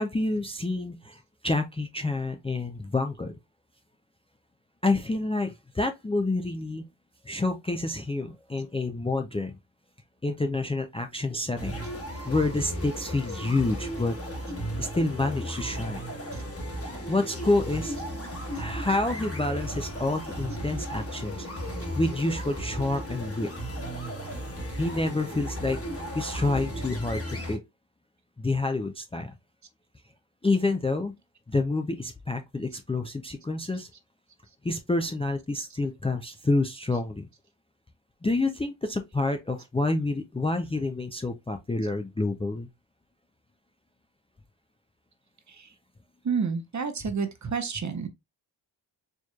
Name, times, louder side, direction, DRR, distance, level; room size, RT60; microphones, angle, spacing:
voice 1, 0.0-3.3 4.8-6.8 7.2-9.5 10.2-11.8 12.3-14.1 14.8-16.0 17.1-18.0 18.5-21.5 21.9-23.5 24.7-25.8 26.1-27.6 28.4-29.3 30.4-31.1 31.5-33.9 34.6-37.2 38.2-42.7, left 2 dB, 15° left, 0.4 m, -28 dB
sound 1, 11.6-27.6, equal, 30° left, 1.4 m, -35 dB
voice 2, 46.2-48.1, right 5 dB, 40° right, 0.9 m, -30 dB
4.6 x 3.0 x 2.3 m
cardioid pair, 80°, 44 cm